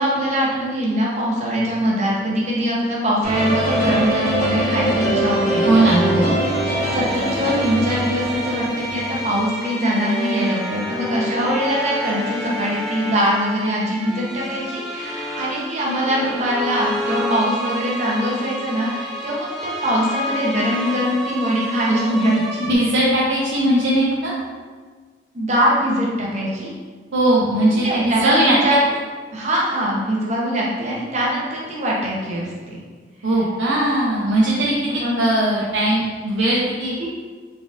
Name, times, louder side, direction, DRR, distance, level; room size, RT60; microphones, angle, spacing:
voice 1, 0.0-6.3 6.6-22.7 25.3-26.7 27.8-28.8 29.3-32.8 34.9-35.2 37.0-37.1, equal, 40° right, -4 dB, 0.8 m, -22 dB
sound 1, 3.2-9.4, right 1 dB, 45° left, 1.1 m, -23 dB
sound 2, 3.3-22.7, equal, ahead, 0.5 m, -29 dB
voice 2, 5.7-6.3 22.6-24.3 27.1-28.6 33.2-34.7 35.2-37.1, right 1 dB, 90° right, -6 dB, 0.6 m, -19 dB
3.9 x 3.6 x 2.5 m, 1.5 s
head